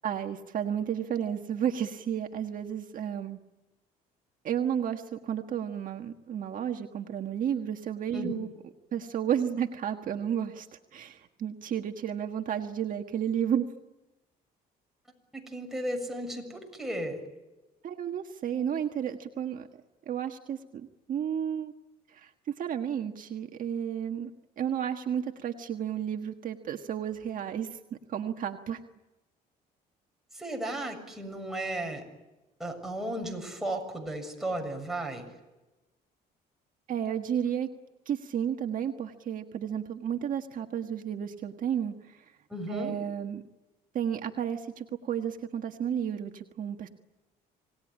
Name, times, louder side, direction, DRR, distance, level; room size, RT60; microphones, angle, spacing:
voice 1, 0.0-3.4 4.4-8.5 8.9-10.7 10.9-13.6 17.8-19.7 20.1-21.7 22.1-22.3 22.6-24.3 24.6-27.8 28.1-28.8 36.9-37.7 38.0-42.2 42.7-43.4 43.9-46.9, right 9 dB, 55° right, 4 dB, 1.6 m, -32 dB
voice 2, 15.3-17.2 30.3-32.0 32.6-35.3 42.5-42.9, right 1 dB, ahead, 1 dB, 7.0 m, -34 dB
27.5 x 19.0 x 9.9 m, 1.1 s
cardioid pair, 110°, 17 cm